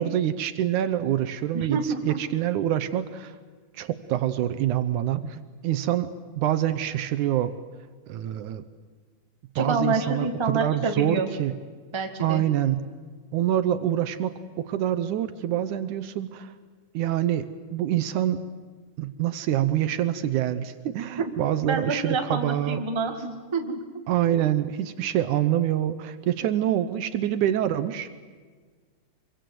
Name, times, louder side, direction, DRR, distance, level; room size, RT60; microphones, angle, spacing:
voice 1, 0.0-3.4 3.7-6.1 6.4-7.5 8.1-8.6 9.6-11.5 12.2-12.8 13.3-16.5 16.9-18.4 19.0-22.8 24.1-28.1, right 11 dB, 75° right, 12 dB, 2.2 m, -26 dB
voice 2, 1.5-2.2 9.5-11.3 11.9-12.4 21.6-23.8, right 3 dB, 10° right, 4 dB, 1.4 m, -27 dB
25.5 x 24.0 x 7.8 m, 1.5 s
omnidirectional pair, 3.8 m